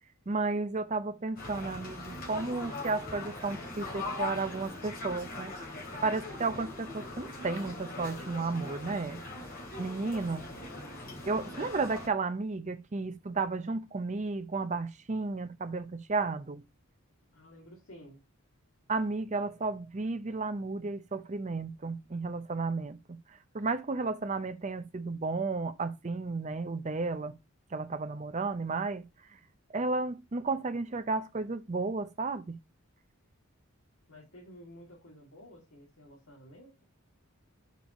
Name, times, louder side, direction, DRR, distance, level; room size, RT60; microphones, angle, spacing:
voice 1, 0.3-5.5 6.0-9.2 9.8-10.5 11.3-16.6 18.9-23.2 23.5-27.3 27.7-29.1 29.7-32.6, right 3 dB, 30° right, 0.6 m, -33 dB
sound 1, 1.4-12.1, left 2 dB, 40° left, 2.6 m, -41 dB
voice 2, 17.3-18.2 34.1-36.8, equal, 65° left, 2.3 m, -52 dB
5.3 x 4.7 x 5.1 m
head